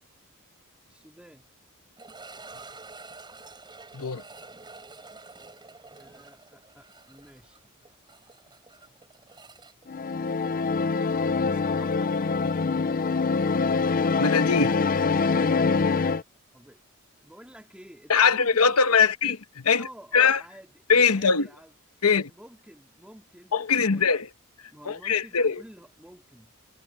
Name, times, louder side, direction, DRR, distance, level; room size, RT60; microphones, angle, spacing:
voice 1, 0.9-1.5 6.0-7.6 11.3-12.5 16.5-16.8 17.2-19.1 19.7-21.7 22.0-23.6 23.9-24.2 24.6-26.5, equal, 5° right, 3.2 m, -50 dB
sound 1, 2.0-10.9 11.1-11.2 11.9-12.0 14.6-14.7, right 3 dB, 20° right, 7.4 m, -48 dB
sound 2, 9.9-16.2, left 4 dB, 40° left, 0.5 m, -24 dB
voice 2, 14.2-14.8 18.1-19.9 20.1-20.4 20.9-21.5 22.0-22.3 23.5-24.3 24.9-25.6, left 5 dB, 80° left, 1.1 m, -22 dB
head